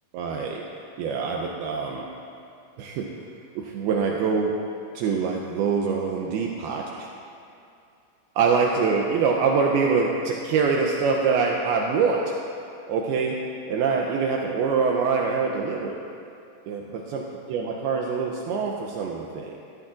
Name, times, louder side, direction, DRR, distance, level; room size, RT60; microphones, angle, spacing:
voice 1, 0.1-0.6 1.0-2.1 2.8-3.3 3.6-4.5 4.9-7.1 8.4-12.3 12.9-13.4 13.7-16.0 16.7-19.6, right 5 dB, 85° right, 0 dB, 2.2 m, -24 dB
18.0 x 12.5 x 2.5 m, 2.6 s
omnidirectional pair, 5.2 m